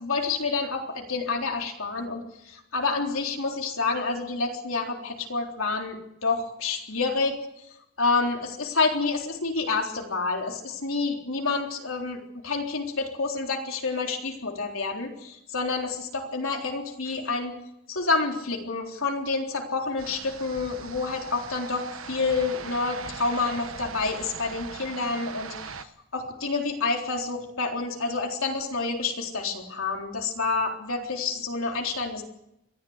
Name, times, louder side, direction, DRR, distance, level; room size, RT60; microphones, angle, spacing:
voice 1, 0.0-7.5 8.0-17.6 17.9-32.2, left 4 dB, 70° left, 1 dB, 3.8 m, -28 dB
sound 1, 20.0-25.8, right 5 dB, 70° right, 1.2 m, -40 dB
22.5 x 15.0 x 8.1 m, 0.82 s
head